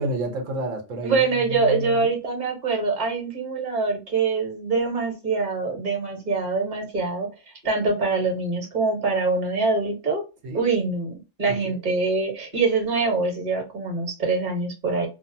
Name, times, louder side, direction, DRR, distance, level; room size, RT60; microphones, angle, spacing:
voice 1, 0.0-2.1 10.4-10.7 11.5-11.8, right 1 dB, 90° right, 1.2 m, -30 dB
voice 2, 1.0-7.3 7.6-10.2 10.5-15.1, right 4 dB, 40° right, 1.1 m, -24 dB
2.5 x 2.3 x 2.6 m
omnidirectional pair, 1.3 m